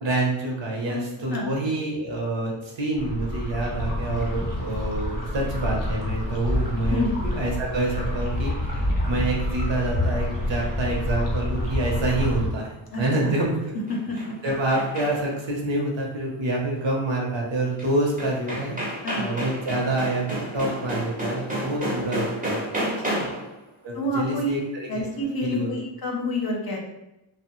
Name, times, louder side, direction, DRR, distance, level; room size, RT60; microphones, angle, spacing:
voice 1, 0.0-13.6 14.4-22.6 23.2-23.3 23.8-24.9 25.4-25.7, right 2 dB, 60° right, -1 dB, 0.8 m, -27 dB
voice 2, 0.9-1.5 6.9-7.1 12.9-13.3 13.9-14.2 19.0-19.3 22.8-23.3 23.9-24.5 24.9-26.8, left 1 dB, 45° left, -1 dB, 0.6 m, -29 dB
sound 1, 2.9-12.5, left 1 dB, 20° left, 0.8 m, -27 dB
sound 2, 13.7-15.4 17.8-17.9 18.2-23.5, right 1 dB, 15° right, 0.6 m, -31 dB
2.8 x 2.1 x 2.9 m, 0.93 s
wide cardioid pair, 135°, 50 cm